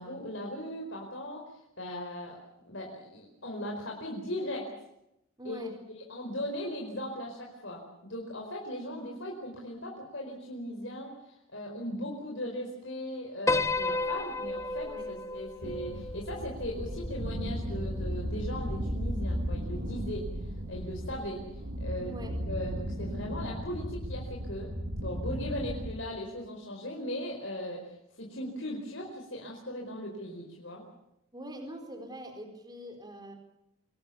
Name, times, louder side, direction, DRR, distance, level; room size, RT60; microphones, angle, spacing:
voice 1, 0.0-1.4 1.8-2.4 2.6-4.7 5.4-24.7 25.0-30.8, left 1 dB, 60° left, 0 dB, 4.7 m, -38 dB
voice 2, 5.4-5.7 14.8-15.1 22.0-22.4 31.3-33.3, right 1 dB, 20° right, 5 dB, 4.4 m, -43 dB
Piano, 13.5-17.9, left 2 dB, 15° left, 0.8 m, -33 dB
sound 1, 15.6-26.0, equal, 50° right, 3.2 m, -35 dB
26.0 x 20.0 x 7.1 m, 0.82 s
head